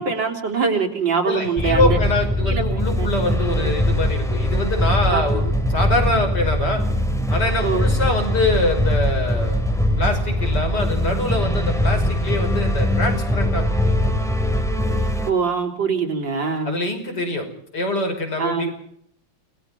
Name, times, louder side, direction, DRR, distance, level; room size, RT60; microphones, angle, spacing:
voice 1, 0.0-2.0 2.5-3.1 5.1-5.5 7.6-7.9 15.3-16.8 18.4-18.7, right 5 dB, 90° right, 3 dB, 4.4 m, -23 dB
voice 2, 1.3-6.8 7.3-9.6 10.0-14.2 16.6-17.5 17.7-18.7, left 2 dB, 65° left, 4 dB, 6.3 m, -24 dB
sound 1, 1.6-15.3, left 1 dB, ahead, 2.9 m, -21 dB
29.5 x 19.0 x 5.8 m, 0.68 s
omnidirectional pair, 2.0 m